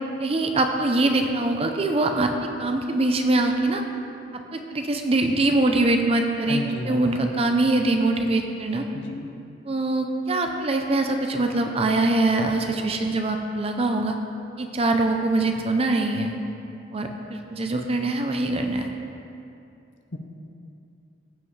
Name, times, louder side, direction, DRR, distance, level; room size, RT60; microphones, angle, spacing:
voice 1, 0.2-2.3 2.6-3.8 4.5-8.9 9.7-14.2 14.6-16.3 16.9-18.9, right 2 dB, 30° right, 4 dB, 0.6 m, -23 dB
voice 2, 6.5-7.3 8.9-9.3 20.1-20.2, left 1 dB, 65° left, 3 dB, 0.9 m, -32 dB
15.0 x 5.4 x 3.3 m, 2.6 s
head